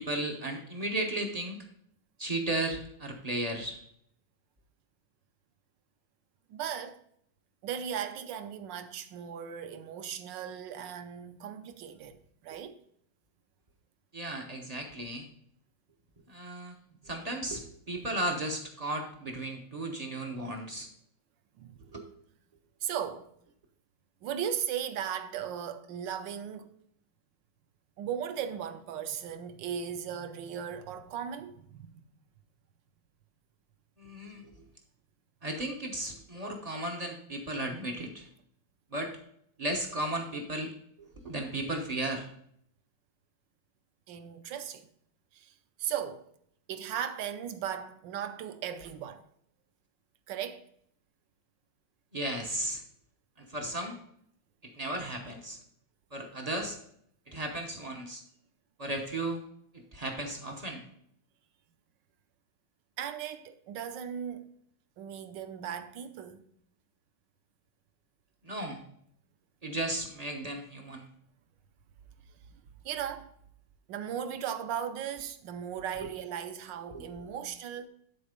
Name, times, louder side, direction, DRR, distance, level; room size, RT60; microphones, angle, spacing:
voice 1, 0.0-1.6 2.2-3.8 12.5-12.6 14.1-15.3 16.3-16.7 17.0-20.9 21.9-22.1 34.0-34.5 35.4-38.3 38.9-39.1 39.6-40.7 41.0-42.3 52.1-52.8 53.4-54.0 54.6-55.6 56.1-56.8 57.3-58.2 58.8-59.4 59.7-60.9 68.4-68.8 69.6-71.1 76.0-76.1 76.9-77.1, right 1 dB, 40° right, 0.5 m, -35 dB
voice 2, 6.5-7.0 7.6-12.8 21.6-21.8 22.8-23.3 24.2-26.7 28.0-32.0 44.1-44.9 45.3-46.2 46.7-49.2 50.3-50.6 63.0-64.5 65.0-66.5 72.8-73.3 73.9-77.9, right 8 dB, 70° right, 1.2 m, -37 dB
10.5 x 4.3 x 5.1 m
omnidirectional pair, 2.3 m